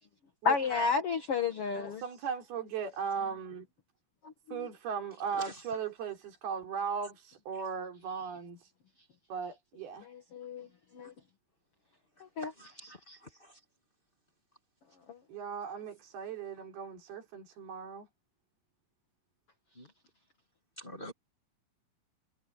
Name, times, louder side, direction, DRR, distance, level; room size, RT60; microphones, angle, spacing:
voice 1, 0.4-2.0 4.2-4.7 10.0-10.7 10.9-11.1 12.2-12.5 13.1-13.2 15.1-15.2, left 5 dB, 50° left, 2.0 m, -32 dB
voice 2, 2.0-3.7 4.5-8.7 9.3-10.1 15.3-18.1, right 6 dB, 85° right, 5.7 m, -37 dB
voice 3, 5.3-5.8 11.0-11.1 12.4-12.9 13.2-13.6 19.7-19.9 20.8-21.1, equal, 30° left, 0.9 m, -46 dB
omnidirectional pair, 4.3 m